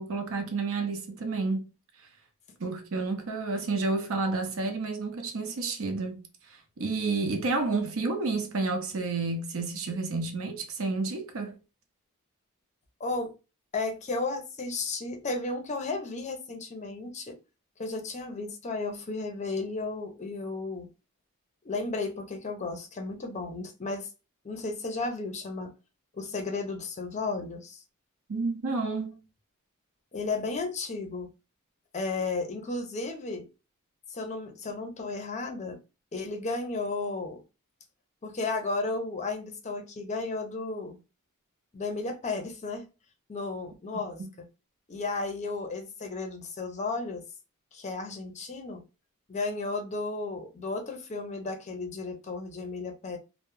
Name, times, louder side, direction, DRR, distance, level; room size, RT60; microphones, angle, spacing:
voice 1, 0.0-1.6 2.6-11.6 28.3-29.2 44.2-44.3, right 3 dB, 65° right, 0.6 m, -30 dB
voice 2, 13.0-13.3 13.7-17.3 17.8-20.9 21.6-24.1 24.4-25.7 26.1-27.8 30.1-31.3 31.9-33.5 34.1-35.8 36.1-37.4 38.2-41.0 41.7-42.9 43.3-44.2 44.9-47.2 47.7-48.8 49.3-53.2, left 3 dB, 30° left, 0.5 m, -34 dB
2.2 x 2.0 x 2.9 m
head